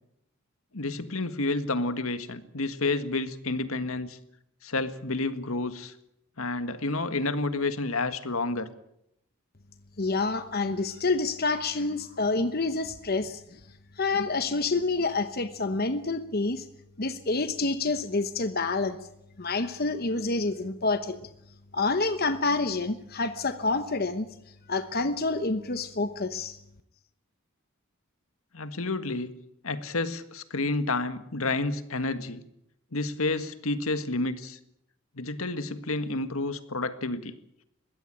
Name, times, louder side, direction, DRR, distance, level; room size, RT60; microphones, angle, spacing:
voice 1, 0.7-4.2 4.6-5.9 6.4-8.7 28.5-29.3 29.6-32.4 32.9-34.6 35.2-37.3, left 2 dB, 75° left, 11 dB, 1.7 m, -30 dB
voice 2, 10.0-13.6 14.0-16.7 17.0-19.0 19.4-21.2 21.7-24.3 24.7-26.6, left 3 dB, 45° left, 10 dB, 1.0 m, -28 dB
22.0 x 16.5 x 9.0 m, 0.79 s
head